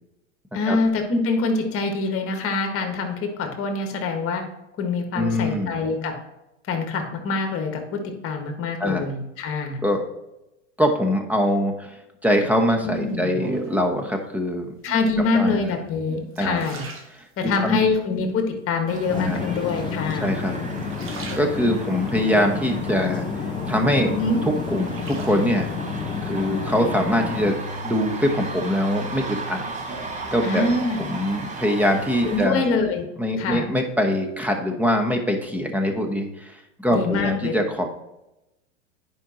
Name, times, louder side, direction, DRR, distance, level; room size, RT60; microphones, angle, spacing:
voice 1, 0.5-4.4 4.8-6.1 6.7-9.8 12.8-13.3 14.8-16.8 17.4-20.3 24.0-24.4 30.4-31.2 32.2-33.1 33.4-33.7 36.9-37.5, left 3 dB, 35° left, 4 dB, 1.7 m, -25 dB
voice 2, 5.1-5.8 8.8-9.1 9.8-10.0 10.8-14.7 15.3-15.8 16.4-16.6 17.4-17.8 19.1-19.5 20.2-20.6 21.1-23.3 23.6-24.1 24.4-25.7 26.2-27.6 27.8-29.6 30.3-30.7 31.1-32.6 33.2-37.9, equal, 5° right, 4 dB, 1.0 m, -23 dB
sound 1, 12.9-14.0 14.8-15.3 15.8-17.8 18.3-18.9 19.7-20.4 20.7-22.0 22.5-23.7 24.1-25.8 27.1-27.7 28.2-30.8 31.0-31.6, right 3 dB, 35° right, 1.4 m, -40 dB
sound 2, 18.9-32.5, right 2 dB, 20° right, 1.1 m, -34 dB
sound 3, 19.1-27.5, left 6 dB, 15° left, 0.3 m, -31 dB
9.7 x 5.3 x 3.1 m, 0.93 s
hypercardioid pair, 105°, 37 cm